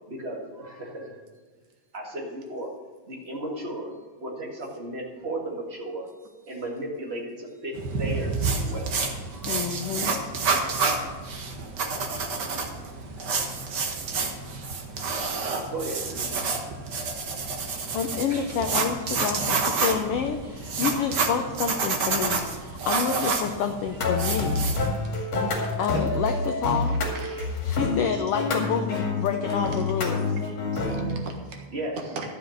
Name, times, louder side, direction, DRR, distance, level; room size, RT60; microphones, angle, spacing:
voice 1, 0.1-1.2 1.9-2.7 3.1-3.9 4.2-6.1 6.5-9.0 9.3-9.5 15.7-17.3 18.3-18.5 25.9-26.0 27.7-27.8 29.9-30.1 31.7-32.0, right 1 dB, 25° right, -1 dB, 1.6 m, -35 dB
sound 1, 7.7-24.9, right 4 dB, 55° right, 1.2 m, -29 dB
voice 2, 9.5-10.2 17.9-24.7 25.8-27.0 27.6-30.4, left 7 dB, 80° left, 6 dB, 1.3 m, -28 dB
sound 2, 24.0-31.1, left 3 dB, 55° left, 3.2 m, -27 dB
voice 3, 27.1-27.5 29.9-30.1 30.4-31.6 32.1-32.4, right 3 dB, 70° right, 2 dB, 2.8 m, -40 dB
12.5 x 7.7 x 6.4 m, 1.3 s
omnidirectional pair, 3.5 m